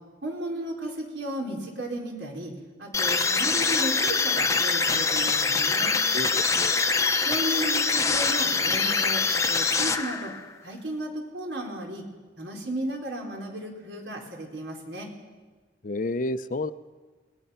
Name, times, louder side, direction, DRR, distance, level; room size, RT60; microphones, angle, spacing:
voice 1, 0.2-2.5 2.8-5.9 7.2-9.2 9.5-10.3 10.6-12.0 12.4-15.1, right 1 dB, 80° right, 1 dB, 4.3 m, -34 dB
sound 1, 2.9-10.4, left 4 dB, 15° left, 0.8 m, -24 dB
voice 2, 6.1-6.9 15.8-16.7, left 2 dB, 45° left, 13 dB, 0.6 m, -31 dB
27.0 x 19.0 x 5.7 m, 1.4 s
head